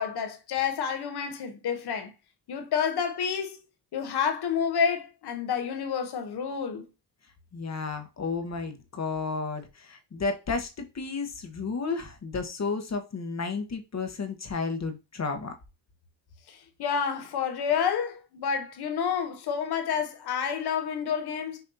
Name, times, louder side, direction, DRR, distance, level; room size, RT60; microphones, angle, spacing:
voice 1, 0.0-2.1 2.5-3.6 3.9-6.8 16.8-21.6, left 7 dB, 70° left, 1.0 m, -29 dB
voice 2, 7.5-15.6, left 4 dB, 40° left, 1.0 m, -32 dB
5.8 x 2.7 x 2.6 m
cardioid pair, 65°, 40 cm